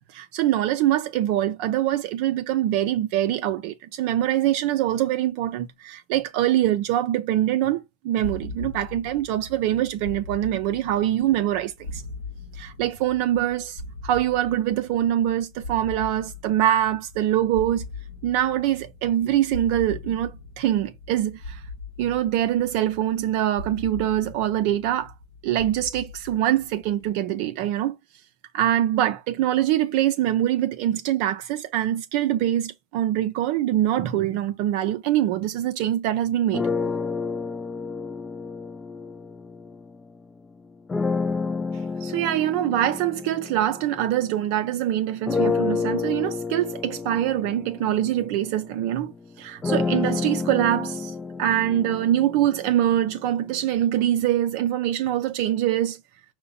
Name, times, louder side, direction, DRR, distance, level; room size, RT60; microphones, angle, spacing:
voice 1, 0.1-12.0 12.5-17.8 18.2-21.6 22.0-25.1 25.4-28.0 28.5-36.7 41.7-49.1 49.4-56.0, right 12 dB, 55° right, 0.4 m, -24 dB
sound 1, 8.2-27.1, left 2 dB, 75° left, 0.9 m, -40 dB
sound 2, 36.5-40.1 40.9-44.7 45.3-53.2, left 4 dB, 20° left, 0.3 m, -30 dB
5.6 x 2.2 x 3.8 m
figure-of-eight pair, 75°, 0 cm